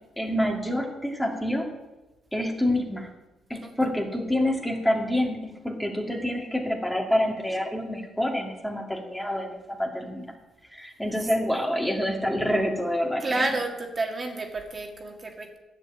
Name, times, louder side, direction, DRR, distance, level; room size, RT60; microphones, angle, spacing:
voice 1, 0.2-1.7 2.3-3.1 3.5-10.3 10.7-13.4, left 1 dB, 5° left, 1 dB, 2.2 m, -27 dB
voice 2, 13.2-15.6, right 2 dB, 35° right, 2 dB, 2.0 m, -30 dB
11.5 x 6.4 x 8.9 m, 1.1 s
cardioid pair, 90°, 0 cm